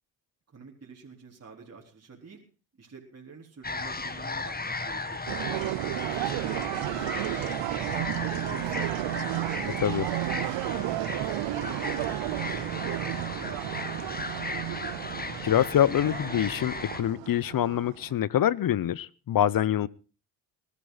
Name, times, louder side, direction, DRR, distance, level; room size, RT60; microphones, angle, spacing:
voice 1, 0.5-2.4 2.8-5.6 5.9-7.5 7.8-9.2 9.5-12.1 12.4-14.2, right 4 dB, 30° right, 4.2 m, -47 dB
sound 1, 3.6-17.0, left 3 dB, 20° left, 1.9 m, -36 dB
sound 2, 5.3-18.1, right 18 dB, 70° right, 0.6 m, -33 dB
voice 2, 15.4-19.9, left 11 dB, 45° left, 0.8 m, -25 dB
20.0 x 12.5 x 4.0 m
supercardioid pair, 65°, 46 cm